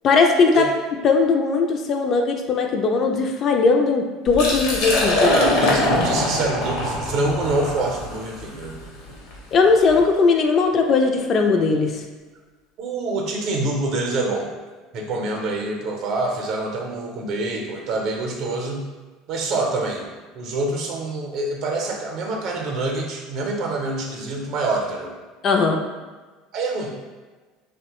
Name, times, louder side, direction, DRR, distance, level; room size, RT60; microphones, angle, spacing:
voice 1, 0.0-0.7 1.0-5.3 9.5-12.0 25.4-25.8, left 4 dB, 45° left, 3 dB, 0.3 m, -18 dB
Liquid, 4.3-10.0, left 2 dB, 70° left, 0.7 m, -23 dB
voice 2, 5.0-8.8 12.8-14.5 14.9-18.8 19.3-20.1 20.3-25.1 26.5-27.0, right 2 dB, 55° right, 1 dB, 0.6 m, -26 dB
2.9 x 2.1 x 2.9 m, 1.3 s
hypercardioid pair, 75°, 0 cm